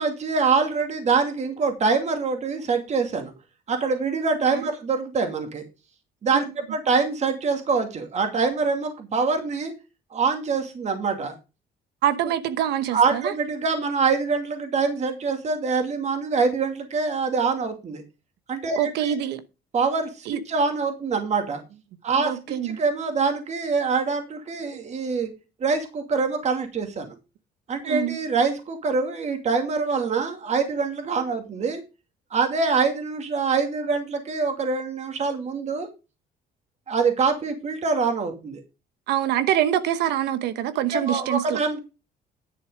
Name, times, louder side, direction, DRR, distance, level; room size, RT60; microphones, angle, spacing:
voice 1, 0.0-3.3 3.7-5.6 6.2-9.7 10.1-11.3 12.9-18.0 18.5-19.1 19.7-21.6 22.0-22.4 22.6-25.3 25.6-27.1 27.7-31.8 32.3-35.9 36.9-38.6 40.9-41.8, right 4 dB, 40° right, 2.4 m, -24 dB
voice 2, 12.0-13.3 18.8-19.4 20.3-20.4 22.2-22.8 27.8-28.2 39.1-41.6, right 11 dB, 80° right, 1.1 m, -25 dB
10.5 x 6.8 x 5.0 m
cardioid pair, 110°, 17 cm